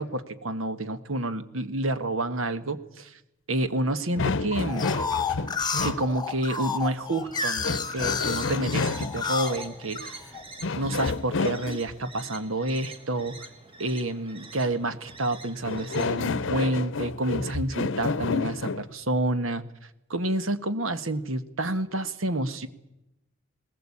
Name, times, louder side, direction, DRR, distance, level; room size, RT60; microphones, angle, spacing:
voice 1, 0.0-3.2 3.5-4.9 5.8-10.2 10.8-13.5 13.8-19.6 20.1-22.7, right 1 dB, 80° right, 11 dB, 1.5 m, -29 dB
sound 1, 4.2-6.1 7.6-9.3 10.6-11.9 15.6-18.9, left 4 dB, 65° left, 0.8 m, -29 dB
sound 2, 4.7-10.4 10.9-11.6, left 5 dB, 20° left, 1.3 m, -31 dB
sound 3, 6.3-16.3, right 2 dB, 30° right, 2.2 m, -46 dB
20.0 x 20.0 x 8.6 m, 0.92 s
head